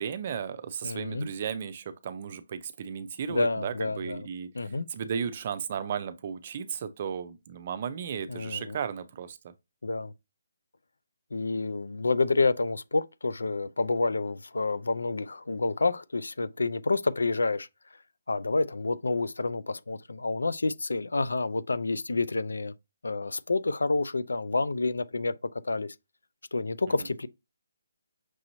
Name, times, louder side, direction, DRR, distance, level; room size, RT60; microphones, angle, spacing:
voice 1, 0.0-4.5 4.9-9.5 27.0-27.1, right 7 dB, 40° right, 0.5 m, -35 dB
voice 2, 0.8-1.3 3.3-4.3 4.5-4.9 8.3-8.8 9.8-10.1 11.3-17.7 18.3-22.7 23.0-25.3 25.6-25.9 26.5-27.3, left 3 dB, 85° left, 0.4 m, -28 dB
6.0 x 2.9 x 2.6 m
hypercardioid pair, 160°, 0 cm